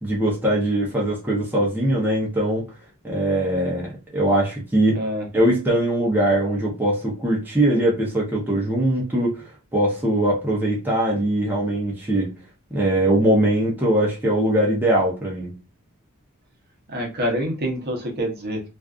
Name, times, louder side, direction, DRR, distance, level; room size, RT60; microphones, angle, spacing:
voice 1, 0.0-2.7 3.0-5.1 5.3-9.4 9.7-12.3 12.7-15.5, right 1 dB, 10° right, 0.6 m, -21 dB
voice 2, 4.9-5.3 16.9-18.6, equal, 45° right, 0.7 m, -26 dB
2.5 x 2.3 x 2.3 m
head